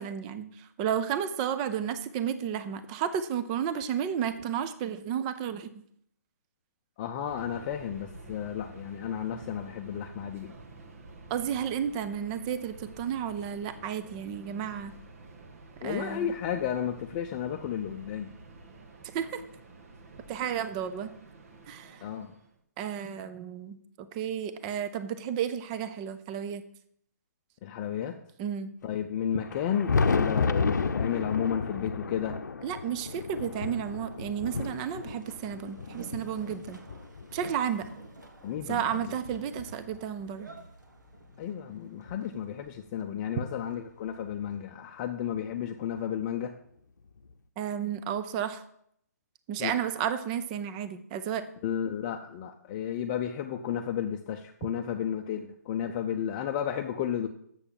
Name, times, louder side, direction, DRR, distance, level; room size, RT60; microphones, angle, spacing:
voice 1, 0.0-5.7 11.3-14.9 15.8-16.3 19.1-19.4 20.3-21.1 21.7-22.1 22.8-26.6 28.4-28.7 32.6-36.8 37.3-37.9 38.7-40.5 47.6-48.6 49.5-51.5, right 8 dB, 25° right, 11 dB, 0.6 m, -32 dB
voice 2, 7.0-10.5 15.8-18.3 22.0-22.3 27.6-28.2 28.8-32.4 38.4-39.1 41.4-46.5 49.6-49.7 51.6-57.3, left 9 dB, 25° left, 4 dB, 0.6 m, -32 dB
Subway metro underground, 7.2-22.6, right 3 dB, 55° right, 1.4 m, -50 dB
Thunder, 29.4-37.9 38.6-40.3 41.4-41.5 42.1-42.2 44.1-44.2 45.5-45.6 47.2-47.3, left 4 dB, 80° left, 0.7 m, -32 dB
Boat Water vehicle, 33.3-44.6, right 3 dB, 90° right, 1.8 m, -51 dB
7.2 x 6.7 x 7.2 m, 0.70 s
hypercardioid pair, 150°, 9 cm